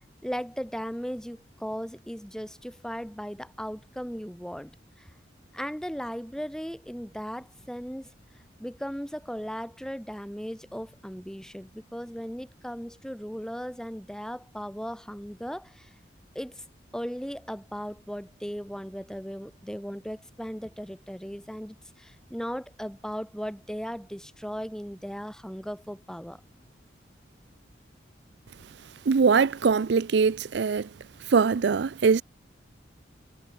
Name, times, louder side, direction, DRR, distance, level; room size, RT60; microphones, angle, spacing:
voice 1, 0.2-4.7 5.0-5.1 5.5-8.1 8.6-15.9 16.3-16.6 16.9-26.4, equal, 5° left, 4.2 m, -37 dB
voice 2, 29.1-30.9 31.3-32.2, right 5 dB, 65° right, 0.4 m, -22 dB
head